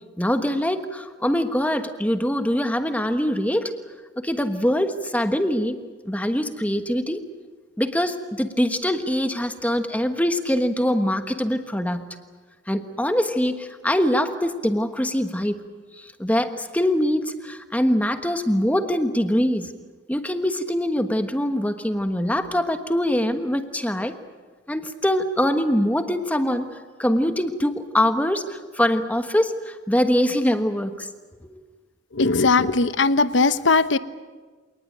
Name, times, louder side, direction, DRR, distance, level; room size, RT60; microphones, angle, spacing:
voice 1, 0.2-3.7 4.2-5.8 6.0-7.2 7.8-12.1 12.7-15.6 16.0-19.7 20.1-24.1 24.7-26.7 27.0-31.1 31.5-31.6, equal, 10° left, 8 dB, 1.2 m, -23 dB
voice 2, 32.1-34.0, left 3 dB, 70° left, 13 dB, 1.0 m, -19 dB
27.0 x 19.5 x 9.0 m, 1.4 s
head